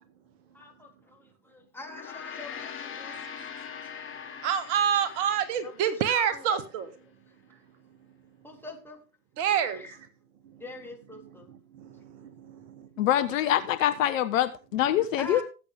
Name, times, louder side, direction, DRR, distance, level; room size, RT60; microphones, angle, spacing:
voice 1, 0.5-1.2 1.5-3.2 5.6-6.6 8.4-9.0 9.7-10.0 10.6-11.5 15.2-15.4, left 2 dB, 5° left, 3.7 m, -44 dB
Gong, 1.8-6.4, left 7 dB, 30° left, 2.8 m, -42 dB
voice 2, 4.4-6.9 9.4-9.8 10.5-10.6 11.7-12.9, right 8 dB, 50° right, 1.9 m, -28 dB
voice 3, 13.0-15.4, left 12 dB, 60° left, 1.2 m, -25 dB
17.5 x 8.3 x 3.6 m
figure-of-eight pair, 80°, 45 cm